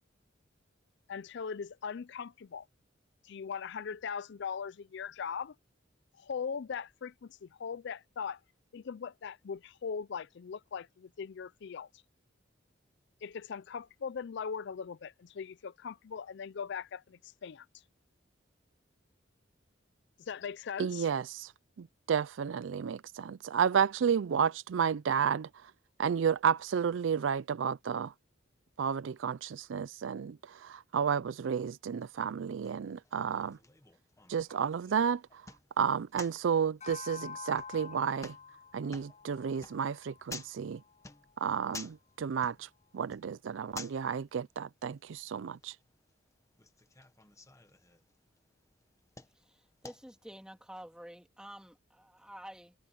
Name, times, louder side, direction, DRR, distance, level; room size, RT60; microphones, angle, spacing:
voice 1, 1.1-2.7 3.2-5.5 6.2-8.4 8.7-11.9 13.2-17.7 20.3-21.1, left 6 dB, 65° left, 0.4 m, -40 dB
voice 2, 20.8-21.5 21.8-25.5 26.0-28.1 28.8-33.6 34.3-35.4 35.8-38.3 38.7-40.8 41.4-42.7 42.9-45.7, right 7 dB, 75° right, 0.4 m, -31 dB
sound 1, 31.8-50.4, left 3 dB, 15° left, 1.2 m, -53 dB
sound 2, 36.8-41.4, left 6 dB, 40° left, 6.4 m, -48 dB
voice 3, 49.3-52.7, equal, 5° right, 2.8 m, -49 dB
head